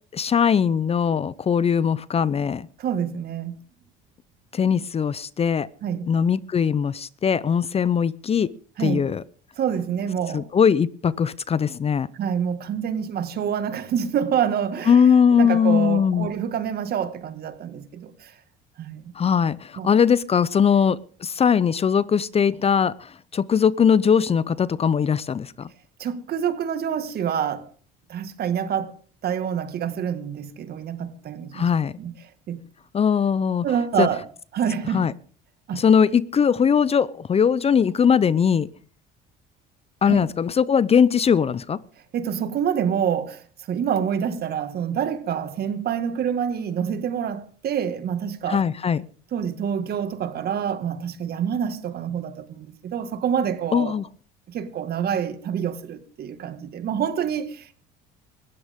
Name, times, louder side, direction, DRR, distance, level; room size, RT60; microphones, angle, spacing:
voice 1, 0.1-2.7 4.5-5.7 6.1-8.5 8.8-9.2 10.3-12.1 14.9-16.3 19.2-25.7 31.5-31.9 32.9-33.7 34.0-34.1 34.9-35.1 35.7-38.7 40.0-41.8 48.5-49.0 53.7-54.1, left 7 dB, 30° left, 0.6 m, -20 dB
voice 2, 2.8-3.6 5.8-6.1 8.8-9.0 9.6-10.5 12.1-18.3 18.8-19.1 19.8-19.9 26.0-27.7 28.1-28.9 29.2-31.7 32.0-32.1 32.5-32.6 33.6-34.2 34.5-35.1 35.7-35.8 40.0-40.3 42.1-48.6 49.3-53.9 54.5-57.7, right 8 dB, 55° right, 1.9 m, -27 dB
19.5 x 15.5 x 3.7 m
supercardioid pair, 85°, 19 cm